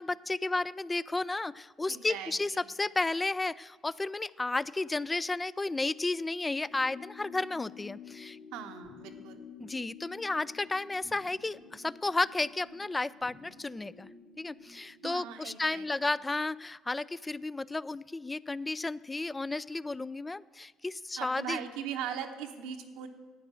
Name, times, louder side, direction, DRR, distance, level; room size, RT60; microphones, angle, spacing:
voice 1, 0.0-8.4 9.6-14.1 14.4-21.6, left 2 dB, 20° left, 20 dB, 0.3 m, -33 dB
voice 2, 1.9-2.6 8.5-9.4 15.0-15.9 21.2-23.1, right 8 dB, 75° right, 6 dB, 0.9 m, -39 dB
sound 1, 6.7-15.4, left 6 dB, 70° left, 2.9 m, -51 dB
10.5 x 8.9 x 6.8 m, 1.4 s
hypercardioid pair, 60°, 0 cm